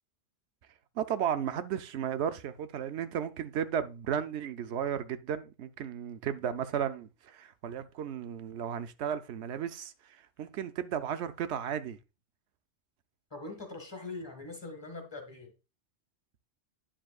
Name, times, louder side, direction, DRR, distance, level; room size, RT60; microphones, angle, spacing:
voice 1, 1.0-12.0, right 8 dB, 85° right, 0.9 m, -34 dB
voice 2, 13.3-15.5, left 3 dB, 25° left, 1.7 m, -42 dB
10.0 x 7.1 x 2.4 m
omnidirectional pair, 1.1 m